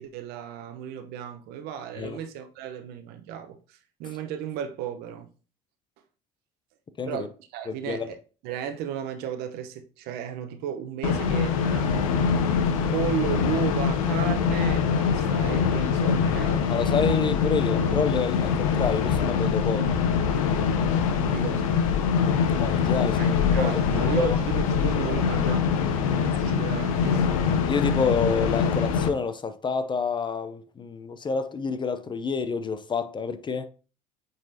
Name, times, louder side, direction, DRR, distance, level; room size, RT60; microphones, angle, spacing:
voice 1, 0.0-5.3 7.1-8.2 8.4-12.1 12.9-17.0 21.3-21.8 23.2-25.7 26.1-27.4, right 9 dB, 70° right, 1.0 m, -34 dB
voice 2, 7.7-8.1 16.6-20.0 22.4-23.8 24.1-24.4 27.7-33.7, left 5 dB, 25° left, 0.6 m, -28 dB
sound 1, 11.0-29.1, left 6 dB, 85° left, 0.8 m, -24 dB
8.8 x 4.0 x 2.8 m
hypercardioid pair, 75°, 17 cm